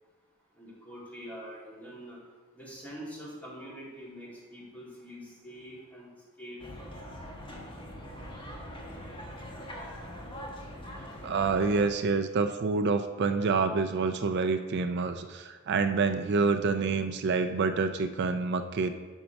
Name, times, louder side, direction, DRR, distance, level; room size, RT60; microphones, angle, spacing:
voice 1, 0.5-2.2 2.5-6.1 6.4-6.9, equal, 10° left, -7 dB, 2.6 m, -45 dB
sound 1, 6.6-11.9, equal, 25° left, 1.1 m, -42 dB
voice 2, 11.2-18.9, right 4 dB, 55° right, 9 dB, 0.4 m, -27 dB
6.3 x 5.9 x 5.1 m, 1.3 s
head